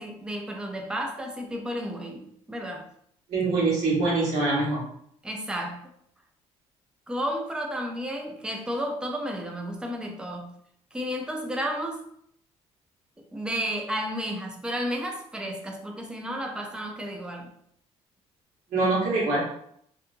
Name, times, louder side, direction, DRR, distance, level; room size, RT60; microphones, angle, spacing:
voice 1, 0.0-2.8 5.2-5.9 7.1-10.5 10.9-12.0 13.2-17.5, equal, 5° right, 2 dB, 0.4 m, -32 dB
voice 2, 3.3-4.8 18.7-19.4, right 3 dB, 80° right, -5 dB, 1.3 m, -24 dB
2.8 x 2.3 x 2.6 m, 0.69 s
cardioid pair, 150°, 12 cm